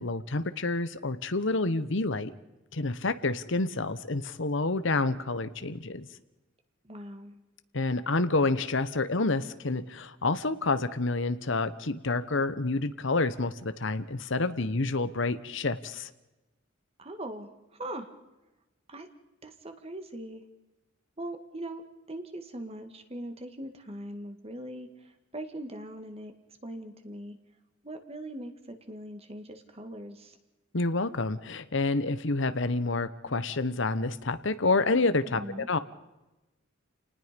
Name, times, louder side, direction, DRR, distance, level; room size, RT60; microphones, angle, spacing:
voice 1, 0.0-2.3 2.7-6.1 7.7-16.1 30.7-35.4 35.7-35.8, left 3 dB, 70° left, 12 dB, 1.1 m, -28 dB
voice 2, 6.8-7.3 17.0-18.1 18.9-19.1 19.4-20.4 21.2-21.8 22.1-26.3 26.6-27.4 27.8-30.4 35.3-35.7, right 1 dB, 30° right, 7 dB, 2.1 m, -41 dB
29.5 x 19.5 x 5.3 m, 1.0 s
head